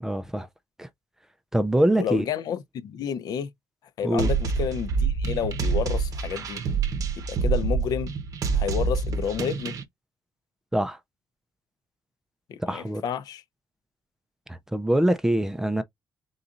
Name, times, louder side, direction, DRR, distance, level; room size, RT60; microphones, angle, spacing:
voice 1, 0.0-0.5 0.8-0.9 1.5-2.3 4.0-4.3 10.7-11.0 12.6-13.0 14.5-15.8, right 1 dB, 5° right, 0.4 m, -24 dB
voice 2, 1.9-3.5 4.0-6.6 7.2-8.1 8.5-9.8 12.5-13.4, left 8 dB, 65° left, 0.7 m, -30 dB
sound 1, 4.2-9.8, right 5 dB, 55° right, 0.8 m, -26 dB
4.0 x 3.9 x 2.4 m
cardioid pair, 160°, 7 cm